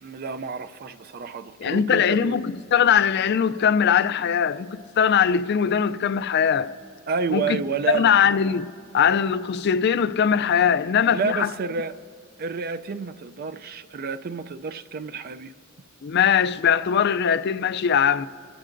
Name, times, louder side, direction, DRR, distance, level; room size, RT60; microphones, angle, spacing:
voice 1, 0.0-2.4 7.1-8.1 11.1-12.0 12.4-15.5, right 5 dB, 45° right, 0.4 m, -29 dB
voice 2, 1.6-6.7 7.3-7.6 7.9-11.5 16.0-18.3, left 7 dB, 50° left, 0.4 m, -21 dB
26.5 x 16.5 x 2.6 m
head